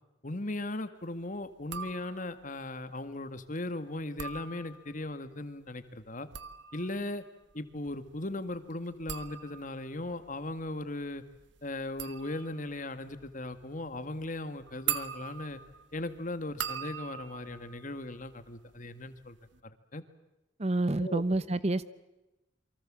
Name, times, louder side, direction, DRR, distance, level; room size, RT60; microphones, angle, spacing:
voice 1, 0.2-6.3 6.7-7.2 7.5-11.2 11.6-15.6 15.9-19.4 19.6-20.0 21.0-21.2, left 2 dB, 40° left, 11 dB, 1.9 m, -38 dB
sound 1, 1.6-2.5 4.0-5.1 6.1-18.8 19.1-19.6, right 9 dB, 65° right, 1.4 m, -42 dB
voice 2, 20.6-21.8, right 2 dB, 35° right, 15 dB, 0.9 m, -28 dB
28.5 x 24.5 x 7.6 m, 0.98 s
head